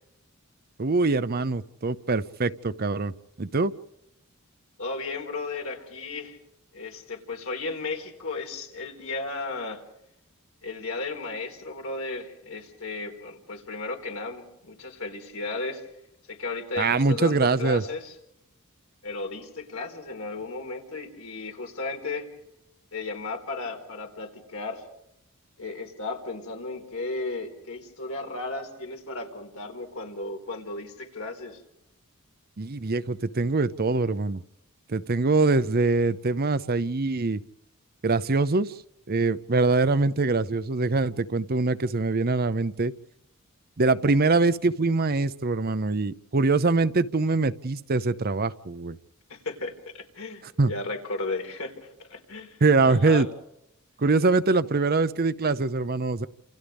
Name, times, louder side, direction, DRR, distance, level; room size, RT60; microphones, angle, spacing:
voice 1, 0.8-3.7 16.8-17.8 32.6-34.4 34.9-37.4 38.0-38.7 39.1-42.9 43.8-49.0 50.6-50.7 52.6-53.3 54.0-56.3, right 3 dB, 45° right, 14 dB, 0.7 m, -23 dB
voice 2, 4.8-6.4 6.7-9.8 10.6-15.8 16.3-18.2 19.0-22.3 22.9-24.9 25.6-31.6 44.0-44.1 49.3-53.3, left 3 dB, 70° left, 3 dB, 4.4 m, -35 dB
30.0 x 28.0 x 3.6 m, 0.79 s
head